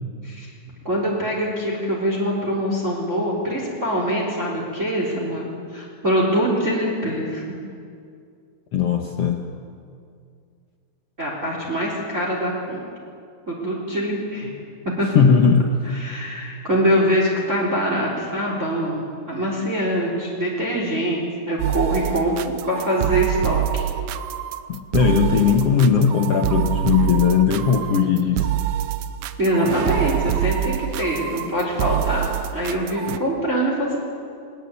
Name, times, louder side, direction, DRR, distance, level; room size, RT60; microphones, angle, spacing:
voice 1, 0.8-7.4 11.2-12.8 13.5-14.6 15.0-15.1 15.8-23.8 29.4-34.0, equal, 20° right, -2 dB, 3.8 m, -24 dB
voice 2, 8.7-9.4 15.0-15.7 24.7-28.5, left 6 dB, 75° left, 3 dB, 1.3 m, -18 dB
sound 1, 21.6-33.2, right 12 dB, 80° right, 2.3 m, -25 dB
21.5 x 19.5 x 9.7 m, 2.3 s
omnidirectional pair, 4.6 m